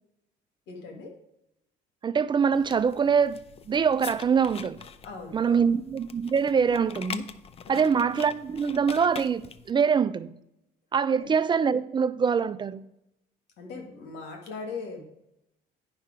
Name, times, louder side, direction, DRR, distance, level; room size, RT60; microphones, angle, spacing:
voice 1, 0.7-1.2 5.0-5.7 7.6-8.0 11.1-11.3 13.6-15.0, left 4 dB, 85° left, 1.6 m, -40 dB
voice 2, 2.0-3.4 3.7-4.8 5.3-7.3 7.7-10.4 10.9-12.9, right 6 dB, 25° right, 0.4 m, -24 dB
sound 1, 2.5-9.7, left 6 dB, 35° left, 0.5 m, -43 dB
9.1 x 5.6 x 4.9 m
cardioid pair, 110°, 17 cm